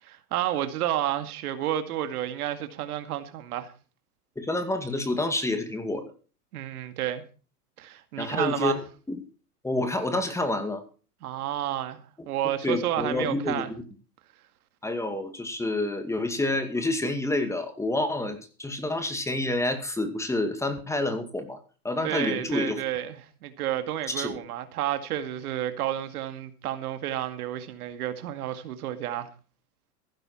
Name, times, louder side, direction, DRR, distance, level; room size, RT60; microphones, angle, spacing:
voice 1, 0.1-3.7 6.5-7.2 7.8-8.8 11.2-13.7 22.0-29.3, right 12 dB, 65° right, 2.2 m, -31 dB
voice 2, 4.4-6.0 8.2-9.2 9.6-10.8 12.6-13.8 14.8-21.6 21.8-22.8 24.1-24.3, left 2 dB, 5° left, 2.2 m, -28 dB
15.0 x 12.0 x 4.4 m
hypercardioid pair, 135°, 47 cm